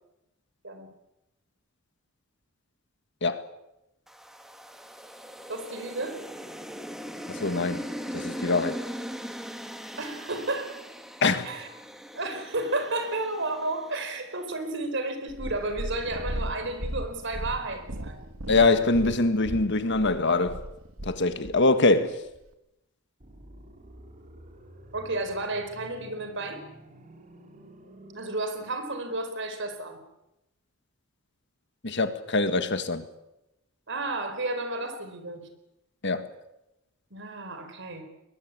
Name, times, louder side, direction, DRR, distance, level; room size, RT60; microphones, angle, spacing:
sound 1, 4.1-14.4, equal, ahead, 1.7 m, -40 dB
voice 1, 5.5-6.2 10.0-10.8 11.4-11.7 12.1-18.3 24.9-26.6 28.1-30.0 33.9-35.5 37.1-38.0, right 2 dB, 60° right, 4.4 m, -32 dB
voice 2, 7.3-7.8 8.1-8.8 11.2-11.5 18.5-20.6 21.0-22.2 31.8-33.1 36.0-36.3, left 3 dB, 55° left, 1.8 m, -23 dB
Purr, 15.3-21.6 22.3-22.4, right 1 dB, 75° right, 2.1 m, -36 dB
sound 2, 23.2-28.2, right 1 dB, 35° right, 3.3 m, -50 dB
22.0 x 21.0 x 8.5 m
head